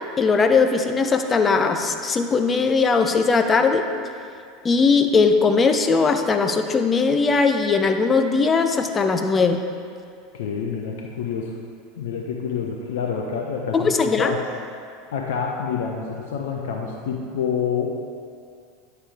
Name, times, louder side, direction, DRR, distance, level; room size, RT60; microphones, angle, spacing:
voice 1, 0.2-3.9 4.6-9.6 13.7-14.3, left 4 dB, 25° left, 6 dB, 0.7 m, -19 dB
voice 2, 10.3-11.6 12.0-13.9 14.2-14.4 15.1-17.9, left 6 dB, 70° left, 0 dB, 0.7 m, -27 dB
9.0 x 6.8 x 3.5 m, 2.2 s
hypercardioid pair, 85°, 0 cm